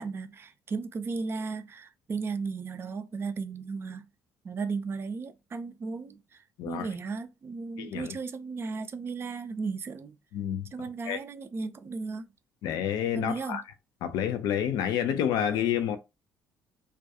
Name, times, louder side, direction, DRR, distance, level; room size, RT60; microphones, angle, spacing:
voice 1, 0.0-4.1 4.4-10.2 10.7-12.2 13.1-13.6, right 4 dB, 30° right, 0.4 m, -35 dB
voice 2, 7.8-8.2 10.3-10.7 11.1-11.2 12.6-13.6 14.0-16.0, left 9 dB, 55° left, 0.4 m, -29 dB
2.3 x 2.2 x 2.7 m
figure-of-eight pair, 50°, 8 cm